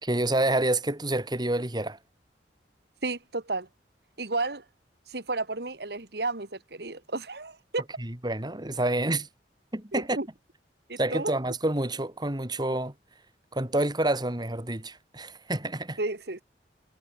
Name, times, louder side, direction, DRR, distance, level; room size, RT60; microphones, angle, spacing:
voice 1, 0.0-2.0 8.0-9.3 9.7-10.2 11.0-12.9 13.5-16.0, right 1 dB, 25° right, 2.5 m, -28 dB
voice 2, 3.0-3.7 4.2-4.6 5.1-7.8 9.9-10.3 10.9-11.3 16.0-16.4, right 3 dB, 65° right, 2.0 m, -32 dB
head